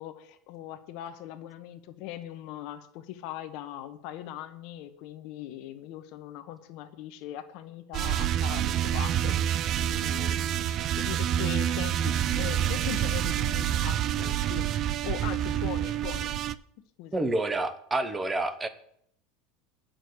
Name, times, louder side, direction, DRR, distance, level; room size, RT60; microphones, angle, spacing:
voice 1, 0.0-14.7 15.0-16.3 17.0-17.3, left 12 dB, 45° left, 8 dB, 1.1 m, -40 dB
sound 1, 7.9-16.6, right 11 dB, 30° right, 0.3 m, -27 dB
voice 2, 17.1-18.7, right 2 dB, 10° right, 12 dB, 0.7 m, -28 dB
9.2 x 6.4 x 8.3 m, 0.68 s
supercardioid pair, 175°, 0 cm